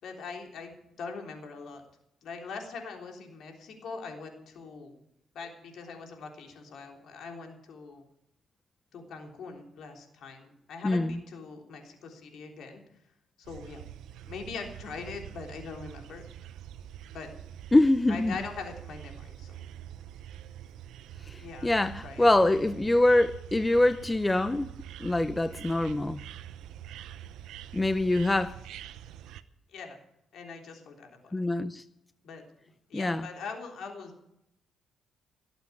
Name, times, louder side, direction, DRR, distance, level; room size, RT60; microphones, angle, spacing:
voice 1, 0.0-1.8 2.2-5.0 5.3-8.0 8.9-12.8 13.4-13.9 14.2-16.2 17.1-17.3 18.1-19.6 21.4-21.8 22.0-22.3 29.7-30.0 30.3-31.4 32.2-32.4 32.9-34.2, left 4 dB, 70° left, 3.4 m, -42 dB
voice 2, 10.8-11.2 17.7-18.3 21.3-24.7 25.0-26.2 27.7-28.6 31.3-31.8 32.9-33.3, left 2 dB, 15° left, 0.6 m, -24 dB
sound 1, 13.4-29.4, right 11 dB, 85° right, 0.8 m, -45 dB
18.5 x 8.0 x 8.3 m
cardioid pair, 90°, 0 cm